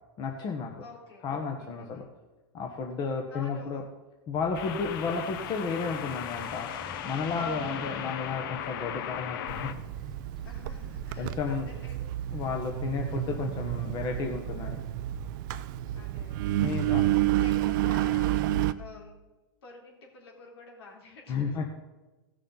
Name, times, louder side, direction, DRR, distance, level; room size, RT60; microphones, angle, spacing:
voice 1, 0.2-0.7 1.2-2.1 2.5-3.8 4.3-6.7 7.0-9.8 11.2-11.7 12.3-14.8 16.6-17.0 21.3-21.7, left 5 dB, 30° left, 2 dB, 1.1 m, -32 dB
sound 1, 0.6-0.9 4.5-9.7, left 9 dB, 60° left, 0.8 m, -37 dB
voice 2, 0.8-1.3 1.6-2.1 3.3-3.8 7.3-7.9 10.4-12.0 12.9-13.2 15.9-16.9 17.4-18.4 18.8-19.2 19.6-21.7, left 3 dB, 80° left, -1 dB, 3.7 m, -49 dB
sound 2, 4.3-11.4, left 1 dB, ahead, 0.8 m, -50 dB
Engine, 9.5-18.7, right 13 dB, 55° right, 0.5 m, -30 dB
16.5 x 6.5 x 4.0 m, 1.2 s
hypercardioid pair, 130°, 13 cm